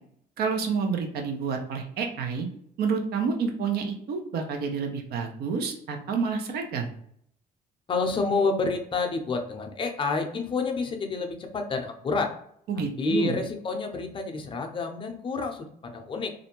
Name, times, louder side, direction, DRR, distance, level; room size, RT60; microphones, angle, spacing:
voice 1, 0.4-2.5 2.8-6.9 12.7-13.3, right 5 dB, 70° right, 4 dB, 0.6 m, -29 dB
voice 2, 7.9-12.4 12.7-16.3, left 3 dB, 30° left, 4 dB, 0.5 m, -29 dB
2.5 x 2.1 x 2.9 m, 0.67 s
cardioid pair, 110°, 17 cm